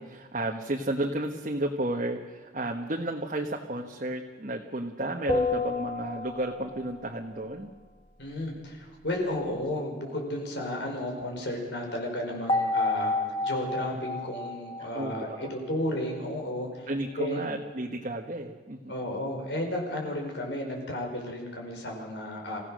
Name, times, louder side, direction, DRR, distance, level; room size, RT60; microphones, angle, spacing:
voice 1, 0.0-7.7 14.8-15.5 16.9-18.9, right 1 dB, 45° right, 1 dB, 1.3 m, -32 dB
sound 1, 5.3-6.8 12.5-15.8, left 3 dB, 25° left, 1.5 m, -30 dB
voice 2, 8.2-13.1 13.4-16.9 17.2-17.5 18.9-22.6, left 1 dB, 70° left, 1 dB, 5.0 m, -33 dB
26.5 x 16.0 x 6.4 m, 1.4 s
head